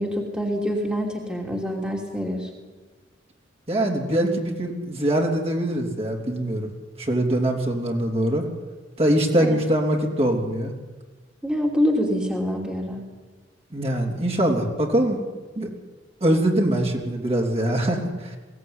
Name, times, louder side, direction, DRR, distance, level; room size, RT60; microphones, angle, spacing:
voice 1, 0.0-2.5 9.4-9.5 11.4-13.0, equal, 5° right, 0 dB, 2.9 m, -25 dB
voice 2, 3.7-6.7 7.0-8.4 9.0-10.7 13.7-15.2 15.5-15.7 16.2-18.4, right 1 dB, 35° right, 0 dB, 3.4 m, -23 dB
22.0 x 17.0 x 9.8 m, 1.3 s
head